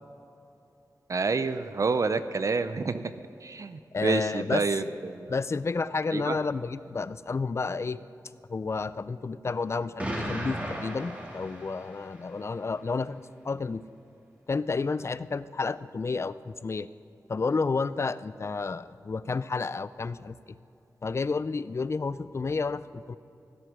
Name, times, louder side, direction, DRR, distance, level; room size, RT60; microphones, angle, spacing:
voice 1, 1.1-3.1 3.4-5.3 6.1-6.4, right 4 dB, 50° right, 11 dB, 0.5 m, -28 dB
voice 2, 3.9-4.9 5.3-8.0 8.5-13.8 14.5-16.9 17.3-20.6 21.0-23.2, left 4 dB, 40° left, 16 dB, 0.4 m, -31 dB
Explosion, 10.0-12.2, equal, 20° right, 2.2 m, -35 dB
17.0 x 8.0 x 6.2 m, 2.9 s
wide cardioid pair, 70°, 7 cm